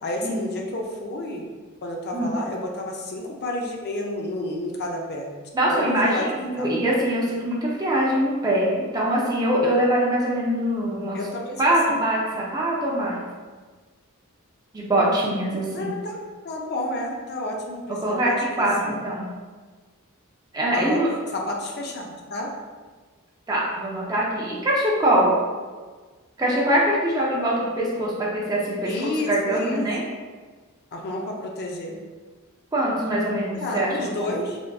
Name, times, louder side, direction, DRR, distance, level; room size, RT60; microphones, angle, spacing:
voice 1, 0.0-1.4 1.8-5.3 5.7-6.3 6.6-6.7 11.1-12.0 15.7-19.0 20.7-21.0 21.3-22.5 28.8-29.9 30.9-32.0 33.5-34.6, left 1 dB, 50° left, 0 dB, 0.4 m, -30 dB
voice 2, 5.5-11.2 11.6-13.2 14.7-16.0 18.0-19.3 20.5-21.1 23.5-25.3 26.4-30.0 32.7-33.9 34.2-34.3, right 1 dB, 20° right, -5 dB, 0.4 m, -23 dB
3.4 x 2.5 x 2.3 m, 1.4 s
head